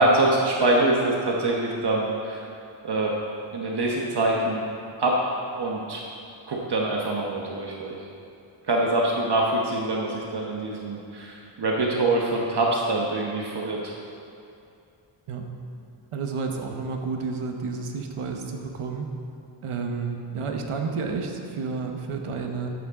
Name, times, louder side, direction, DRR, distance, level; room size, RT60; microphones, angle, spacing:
voice 1, 0.0-2.4 2.8-3.1 3.5-4.6 5.0-5.3 5.6-6.0 6.5-8.0 8.7-13.9, right 2 dB, 55° right, -2 dB, 1.2 m, -24 dB
voice 2, 16.1-19.1 19.6-22.7, right 4 dB, 90° right, 3 dB, 1.1 m, -31 dB
12.5 x 8.5 x 3.7 m, 2.6 s
wide cardioid pair, 100°, 50 cm